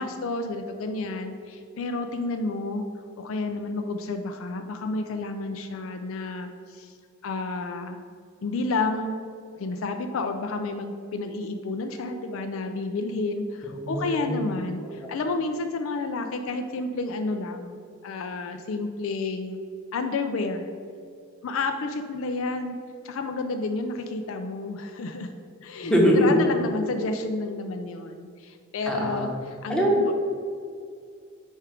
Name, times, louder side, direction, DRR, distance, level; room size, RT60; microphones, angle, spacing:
voice 1, 0.0-2.8 3.2-6.9 7.2-8.0 8.4-9.3 9.6-17.8 18.0-19.6 19.9-20.7 21.4-22.7 23.0-25.3 25.6-25.9 26.2-29.3 29.6-30.0, left 3 dB, 65° left, 6 dB, 0.4 m, -30 dB
voice 2, 13.6-14.5 14.8-15.1 25.8-26.4 28.9-29.3 29.7-30.1, equal, 5° left, -3 dB, 0.9 m, -23 dB
4.8 x 4.4 x 4.9 m, 2.3 s
head